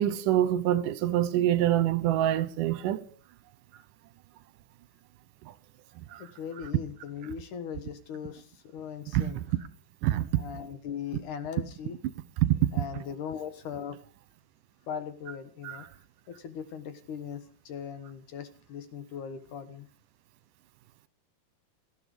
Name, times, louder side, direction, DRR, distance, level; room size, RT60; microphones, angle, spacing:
voice 1, 0.0-3.0 6.1-6.2 9.1-9.3 10.0-10.3 12.4-12.7 15.6-15.8, right 12 dB, 80° right, 2.5 m, -25 dB
voice 2, 6.2-9.4 10.4-12.0 12.7-14.0 14.9-15.9 16.3-19.9, left 7 dB, 70° left, 2.9 m, -39 dB
18.5 x 14.5 x 5.1 m
omnidirectional pair, 3.8 m